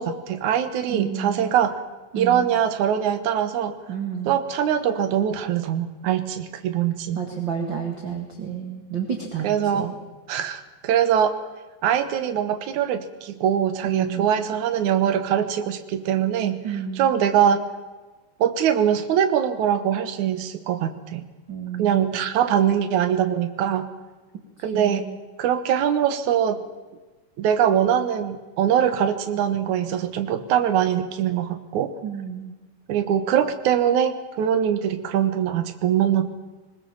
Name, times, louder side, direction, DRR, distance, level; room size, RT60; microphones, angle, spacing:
voice 1, 0.0-1.8 2.2-3.8 4.3-7.2 9.4-9.9 10.3-11.3 11.8-17.6 18.4-21.2 21.8-23.9 24.6-25.1 25.4-26.6 27.4-32.0 32.9-36.3, right 9 dB, 65° right, 10 dB, 1.9 m, -22 dB
voice 2, 0.9-1.5 2.1-2.5 3.9-4.4 7.1-9.9 13.8-14.3 16.6-17.1 21.5-22.1 24.6-25.2 32.0-32.5, right 7 dB, 45° right, 3 dB, 1.5 m, -31 dB
21.0 x 20.5 x 7.2 m, 1.2 s
omnidirectional pair, 5.2 m